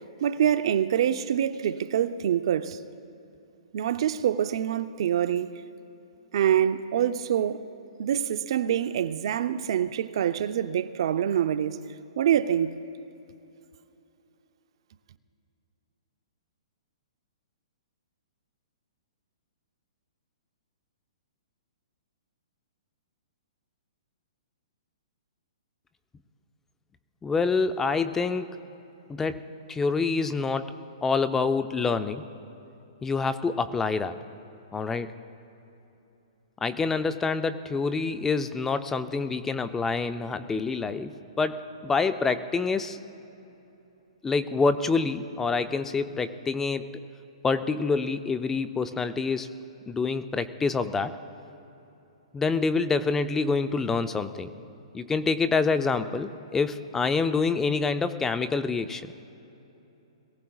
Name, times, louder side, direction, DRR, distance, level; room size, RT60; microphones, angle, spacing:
voice 1, 0.2-2.8 3.7-5.5 6.3-7.6 8.0-11.8 12.2-12.7, right 10 dB, 60° right, 0.6 m, -25 dB
voice 2, 27.2-28.5 29.1-30.8 31.0-32.3 33.0-34.2 34.7-35.1 36.6-43.0 44.2-46.9 47.4-49.5 49.9-51.1 52.3-54.5 54.9-59.1, left 4 dB, 10° left, 0.5 m, -27 dB
22.0 x 16.5 x 2.4 m
hypercardioid pair, 140°, 3 cm